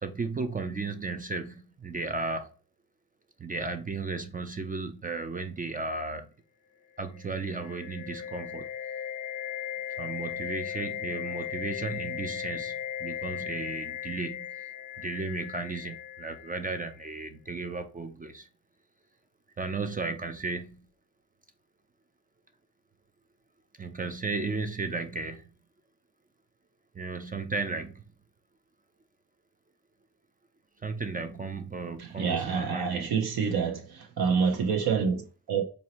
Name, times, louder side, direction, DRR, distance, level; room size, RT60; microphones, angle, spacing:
voice 1, 0.0-2.5 3.4-6.3 7.0-8.7 10.0-14.7 15.0-18.5 19.6-20.8 23.8-25.5 26.9-28.0 30.8-33.1, right 3 dB, 25° right, 0.3 m, -34 dB
sound 1, 7.1-17.0, left 9 dB, 80° left, 0.7 m, -37 dB
voice 2, 32.0-35.6, right 6 dB, 70° right, 0.8 m, -27 dB
4.0 x 2.7 x 2.9 m
cardioid pair, 110°, 39 cm